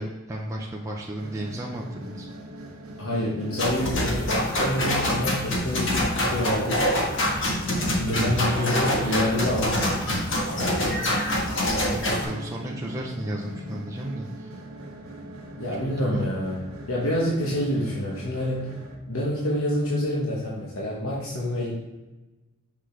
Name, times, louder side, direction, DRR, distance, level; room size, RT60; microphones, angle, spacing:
voice 1, 0.0-2.3 8.2-9.4 11.9-14.5 16.0-16.2, right 1 dB, 15° right, -2 dB, 0.5 m, -34 dB
sound 1, 1.2-18.9, right 1 dB, 75° right, 1.0 m, -41 dB
voice 2, 3.0-6.8 7.9-10.1 15.6-16.6 16.9-18.7 19.1-21.7, left 1 dB, 75° left, -4 dB, 1.1 m, -27 dB
sound 2, 3.6-12.2, left 1 dB, 60° left, 1.3 m, -25 dB
6.3 x 5.9 x 3.3 m, 1.1 s
head